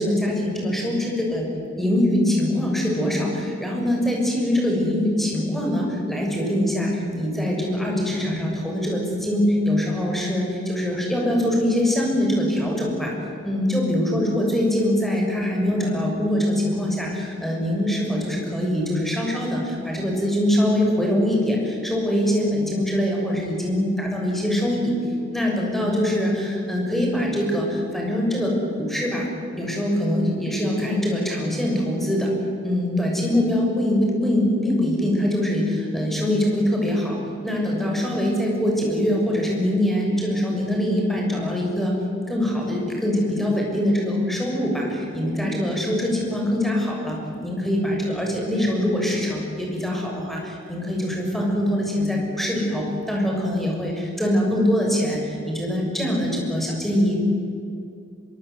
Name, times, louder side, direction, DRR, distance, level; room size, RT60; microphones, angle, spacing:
voice 1, 0.0-1.4 1.8-13.1 13.4-24.9 25.3-29.3 29.6-32.3 32.6-41.9 42.3-47.2 47.4-57.2, left 1 dB, ahead, -1 dB, 6.7 m, -23 dB
25.5 x 22.5 x 8.3 m, 2.6 s
head